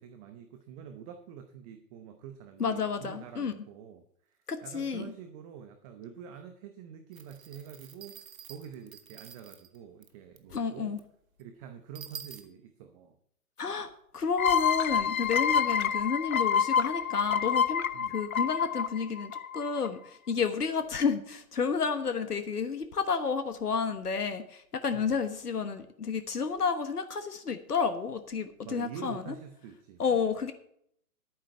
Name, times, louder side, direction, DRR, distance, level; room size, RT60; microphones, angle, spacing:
voice 1, 0.0-11.0 11.4-13.2 17.9-18.2 24.9-25.2 28.6-30.3, right 8 dB, 25° right, 7 dB, 0.8 m, -46 dB
voice 2, 2.6-3.5 4.5-5.1 10.5-11.0 13.6-17.8 18.1-29.2 30.0-30.5, left 5 dB, 85° left, 9 dB, 1.3 m, -31 dB
sound 1, 7.1-9.8 10.0-10.1 10.4-10.5 11.0-11.1 11.4-11.5 11.9-12.4, right 7 dB, 65° right, 1.9 m, -47 dB
sound 2, 14.4-19.9, left 7 dB, 65° left, 1.0 m, -27 dB
11.5 x 9.3 x 4.4 m, 0.70 s
figure-of-eight pair, 130°, 45 cm